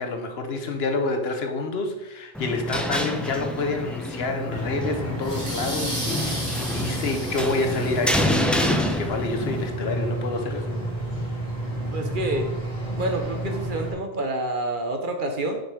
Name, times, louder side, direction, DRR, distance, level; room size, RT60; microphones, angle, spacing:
voice 1, 0.0-10.8 11.2-11.3, left 3 dB, 65° left, 1.0 m, -28 dB
sound 1, 2.3-9.7, equal, ahead, 0.4 m, -28 dB
sound 2, 4.5-13.9, right 1 dB, 40° left, 2.7 m, -30 dB
sound 3, 5.2-8.7, equal, 75° right, 2.5 m, -34 dB
voice 2, 11.9-12.5 13.0-15.6, right 1 dB, 50° right, 0.9 m, -28 dB
6.3 x 5.1 x 4.8 m
omnidirectional pair, 1.2 m